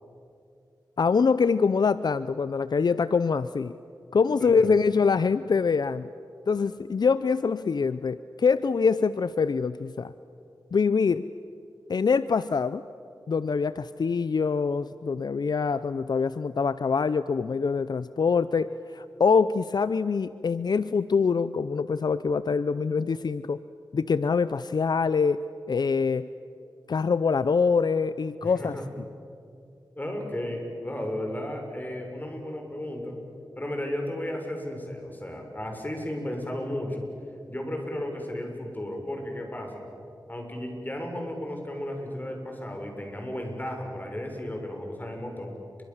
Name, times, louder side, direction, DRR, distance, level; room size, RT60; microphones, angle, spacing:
voice 1, 1.0-3.8 4.1-6.1 6.5-10.1 10.7-11.3 11.9-12.8 13.3-23.6 23.9-25.4 25.7-26.3 26.9-28.8, left 5 dB, 70° left, 15 dB, 0.6 m, -24 dB
voice 2, 4.4-4.7 28.4-28.8 29.9-33.2 33.6-37.1 37.5-39.8 40.3-45.5, left 1 dB, 25° left, 2 dB, 6.7 m, -34 dB
29.5 x 24.5 x 7.3 m, 2.6 s
cardioid pair, 50°, 7 cm